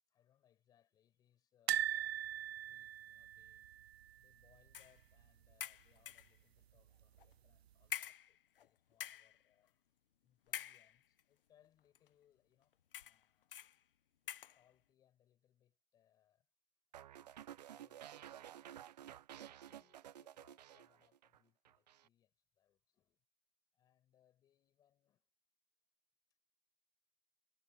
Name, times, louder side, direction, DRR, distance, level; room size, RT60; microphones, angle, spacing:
voice 1, 0.1-2.3 2.6-3.7 4.2-9.9 10.2-13.8 14.5-16.5 17.0-18.9 19.3-23.2 23.7-25.3, left 10 dB, 10° left, 6.9 m, -75 dB
sound 1, 1.7-4.7 5.0-5.2 5.4-5.5 6.8-7.3 7.8-7.9, right 12 dB, 85° right, 0.6 m, -40 dB
sound 2, 4.7-5.0 5.6-6.4 7.2-7.3 7.9-8.7 8.9-9.4 10.5-11.2 12.0-12.1 12.9-13.2 13.5-13.8 14.3-14.6, left 10 dB, 60° left, 1.2 m, -46 dB
sound 3, 16.9-21.4 21.7-22.1, right 11 dB, 45° right, 1.2 m, -53 dB
hypercardioid pair, 180°, 31 cm